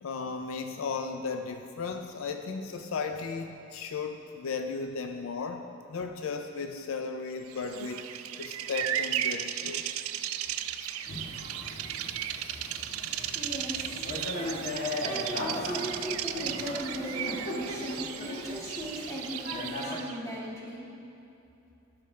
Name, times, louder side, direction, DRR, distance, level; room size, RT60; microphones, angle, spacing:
voice 1, 0.0-8.0 8.4-9.8, left 4 dB, 75° left, 6 dB, 0.4 m, -35 dB
Bird vocalization bird call bird song, 7.5-20.2, right 11 dB, 85° right, 0.3 m, -35 dB
Thunder / Rain, 11.1-20.0, left 1 dB, 50° left, 1.2 m, -38 dB
voice 2, 13.3-14.1 15.0-20.9, equal, 15° left, -6 dB, 1.5 m, -37 dB
12.5 x 5.8 x 3.2 m, 2.8 s
head